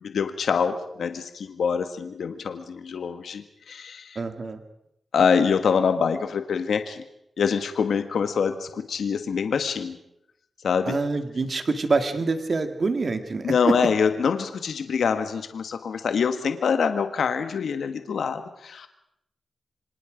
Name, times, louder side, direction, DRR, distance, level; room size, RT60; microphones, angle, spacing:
voice 1, 0.0-4.2 5.1-7.0 7.4-10.0 10.6-10.9 13.4-18.9, left 6 dB, 75° left, 8 dB, 1.5 m, -25 dB
voice 2, 4.2-4.6 10.9-13.5, right 3 dB, 40° right, 8 dB, 2.0 m, -26 dB
27.0 x 26.0 x 5.1 m, 0.80 s
wide cardioid pair, 145°, 0 cm